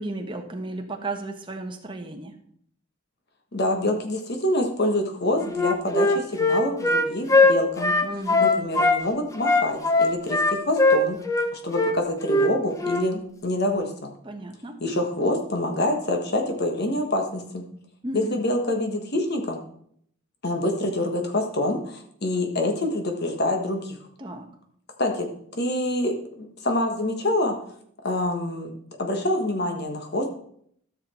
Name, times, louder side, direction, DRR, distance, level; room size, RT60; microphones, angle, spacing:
voice 1, 0.0-2.4 8.0-8.5 14.2-14.8 18.0-18.4 24.2-24.5, right 2 dB, 25° right, 4 dB, 1.2 m, -34 dB
voice 2, 3.5-8.0 8.4-11.2 11.5-14.1 14.8-17.7 18.1-19.6 20.4-24.0 25.0-27.6 28.0-28.7 29.0-30.3, left 1 dB, 50° left, 4 dB, 1.4 m, -26 dB
Wind instrument woodwind instrument, 5.5-9.0 9.4-11.5 11.7-11.9 12.3-12.5 12.8-13.0, left 2 dB, 15° left, 0.8 m, -20 dB
13.5 x 7.0 x 4.4 m, 0.66 s
head